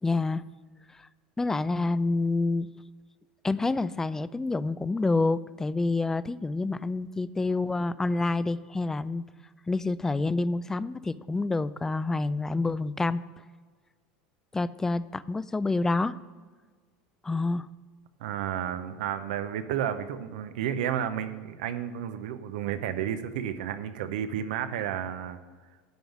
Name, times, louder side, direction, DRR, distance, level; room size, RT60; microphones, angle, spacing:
voice 1, 0.0-0.4 1.0-1.1 1.4-2.7 3.4-9.2 9.7-13.2 14.5-16.2 17.2-17.7, left 3 dB, 10° left, 16 dB, 0.3 m, -28 dB
voice 2, 18.2-25.4, right 9 dB, 80° right, 10 dB, 0.7 m, -32 dB
10.5 x 3.9 x 7.1 m, 1.5 s
supercardioid pair, 105°, 4 cm